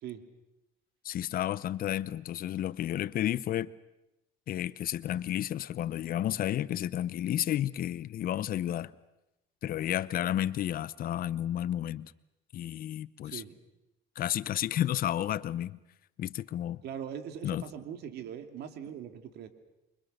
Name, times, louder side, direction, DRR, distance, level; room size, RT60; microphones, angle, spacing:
voice 1, 1.0-3.7 4.5-8.9 9.6-12.1 12.5-13.4 14.2-15.8 16.2-16.8 17.4-17.6, left 12 dB, 60° left, 0.8 m, -31 dB
voice 2, 13.2-13.6 16.8-19.5, right 9 dB, 75° right, 2.5 m, -41 dB
28.5 x 24.5 x 6.6 m
cardioid pair, 110°, 17 cm